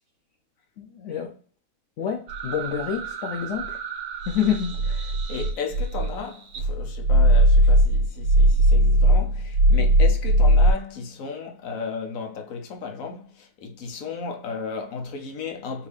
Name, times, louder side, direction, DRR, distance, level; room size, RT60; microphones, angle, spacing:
voice 1, 0.8-1.3 2.0-3.8 4.3-5.1, left 8 dB, 85° left, 0.6 m, -28 dB
sound 1, 2.3-6.2 6.5-10.7, right 1 dB, 55° right, 1.0 m, -20 dB
voice 2, 5.3-15.9, left 5 dB, 55° left, 1.0 m, -34 dB
4.8 x 2.9 x 3.3 m
omnidirectional pair, 2.1 m